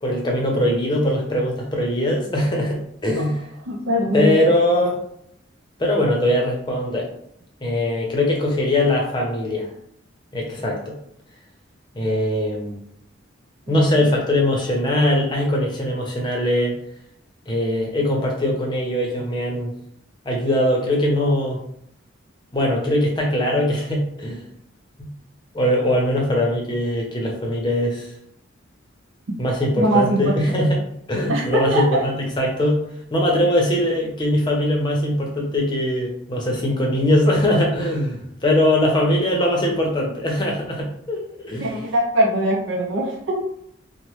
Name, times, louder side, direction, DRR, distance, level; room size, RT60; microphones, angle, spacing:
voice 1, 0.0-3.5 4.1-5.0 5.8-7.1 7.6-9.7 10.3-10.9 11.9-12.8 13.7-16.8 17.5-19.7 20.2-21.6 22.5-24.5 25.0-25.1 25.5-28.1 29.4-32.8 33.1-41.8, left 1 dB, 25° left, -1 dB, 0.6 m, -21 dB
voice 2, 3.7-4.4 13.7-13.8 29.8-30.6 31.3-32.1 41.6-43.4, right 1 dB, 80° right, 0 dB, 0.5 m, -21 dB
3.0 x 2.1 x 3.0 m, 0.72 s
head